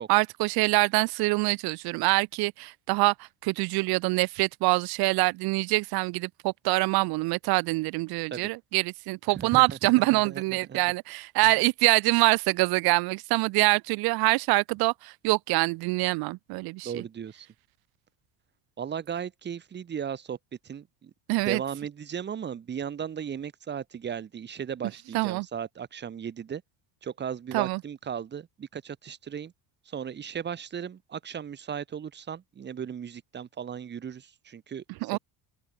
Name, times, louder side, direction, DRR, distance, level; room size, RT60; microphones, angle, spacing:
voice 1, 0.0-17.0 21.3-21.6 25.1-25.5 27.5-27.8 35.0-35.2, right 23 dB, 65° right, 0.7 m, -25 dB
voice 2, 9.3-10.8 11.4-11.6 16.8-17.5 18.8-20.4 20.6-21.1 21.4-26.6 27.0-29.5 29.8-34.8 35.1-35.2, right 8 dB, 25° right, 1.1 m, -36 dB
open air
cardioid pair, 125°, 41 cm